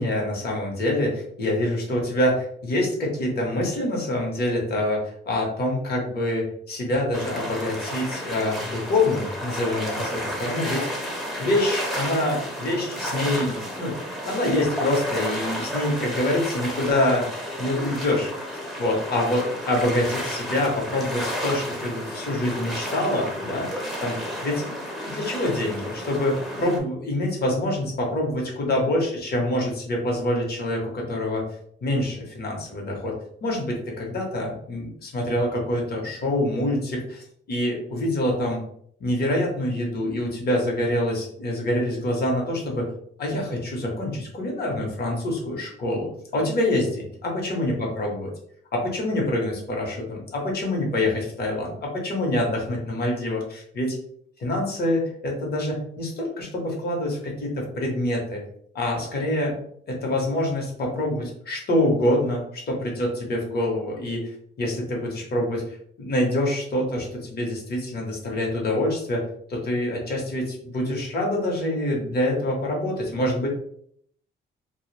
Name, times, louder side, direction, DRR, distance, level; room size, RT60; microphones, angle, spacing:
voice 1, 0.0-11.1 11.4-14.0 14.2-17.3 17.6-23.7 24.0-24.6 25.0-31.4 31.8-38.6 39.0-42.9 43.2-48.3 48.7-54.0 54.4-58.4 58.7-59.6 59.9-64.3 64.6-65.6 66.0-73.5, left 1 dB, 50° left, -1 dB, 1.0 m, -26 dB
sound 1, 7.1-26.8, equal, ahead, 0.6 m, -32 dB
2.3 x 2.1 x 3.2 m, 0.66 s
cardioid pair, 90°, 20 cm